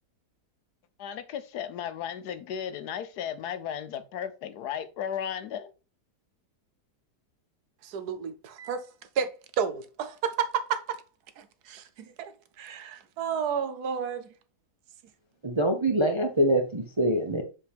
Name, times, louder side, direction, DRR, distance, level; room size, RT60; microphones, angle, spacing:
voice 1, 1.0-5.7, left 9 dB, 75° left, 1.2 m, -35 dB
voice 2, 7.8-8.8 9.2-9.3 9.6-11.0 11.4-12.3 12.6-14.3, right 7 dB, 70° right, 1.2 m, -31 dB
voice 3, 15.4-17.4, right 1 dB, 30° right, 0.5 m, -24 dB
7.6 x 4.5 x 3.5 m
omnidirectional pair, 1.8 m